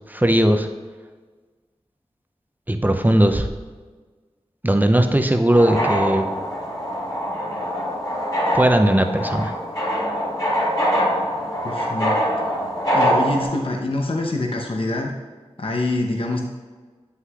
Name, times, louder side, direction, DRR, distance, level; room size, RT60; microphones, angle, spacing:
voice 1, 0.1-0.7 2.7-3.5 4.6-6.3 8.5-9.5, right 1 dB, 15° right, 5 dB, 0.6 m, -18 dB
sound 1, 5.5-13.4, equal, 35° left, 1.8 m, -23 dB
voice 2, 11.6-12.2 12.9-15.1 15.6-16.4, left 2 dB, 55° left, 1 dB, 0.8 m, -25 dB
7.8 x 5.7 x 2.4 m, 1.4 s
wide cardioid pair, 40°, 11 cm